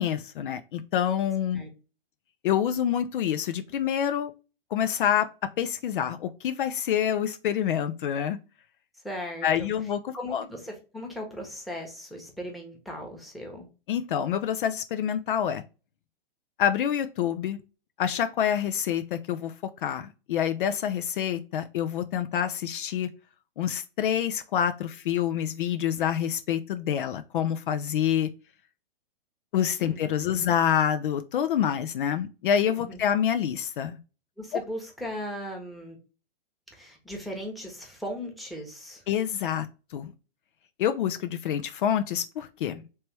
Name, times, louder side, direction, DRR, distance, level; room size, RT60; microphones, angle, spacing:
voice 1, 0.0-1.6 2.4-4.3 4.7-5.3 5.6-8.4 9.4-10.0 10.3-10.4 13.9-15.6 16.6-17.6 18.0-23.1 23.6-28.3 29.5-34.0 39.1-40.1 40.8-42.8, left 9 dB, 60° left, 10 dB, 0.4 m, -27 dB
voice 2, 8.9-9.7 10.1-13.7 29.8-30.5 32.8-33.0 34.4-36.0 36.7-39.0, equal, ahead, 1 dB, 0.9 m, -38 dB
3.3 x 3.0 x 2.9 m, 0.32 s
hypercardioid pair, 120°, 29 cm